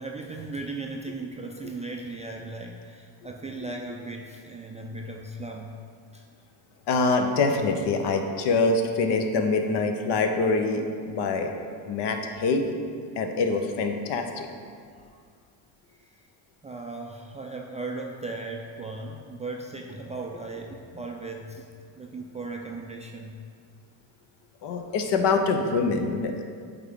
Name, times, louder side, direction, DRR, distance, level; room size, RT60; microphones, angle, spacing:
voice 1, 0.0-5.7 6.1-6.2 16.6-21.7 21.9-23.3, right 3 dB, 15° right, 0 dB, 0.3 m, -37 dB
voice 2, 6.9-11.5 11.9-12.6 13.2-14.5 24.6-26.4, left 3 dB, 60° left, 5 dB, 0.8 m, -25 dB
8.2 x 3.6 x 3.6 m, 2.1 s
supercardioid pair, 80°, 48 cm